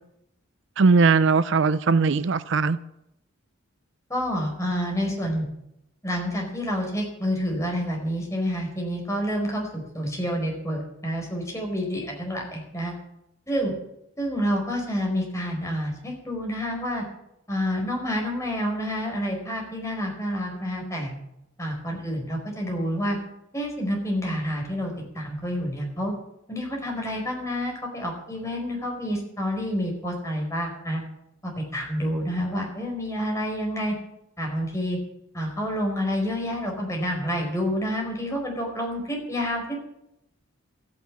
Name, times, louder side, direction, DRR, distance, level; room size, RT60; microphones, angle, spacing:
voice 1, 0.8-2.8, right 4 dB, 60° right, 0.5 m, -19 dB
voice 2, 4.1-5.5 6.0-12.9 13.5-13.7 14.2-17.0 17.5-21.1 21.6-23.2 23.5-26.1 26.5-31.0 31.7-33.9 34.4-35.0 35.3-39.8, equal, 15° left, 4.7 m, -28 dB
13.5 x 9.6 x 8.6 m
head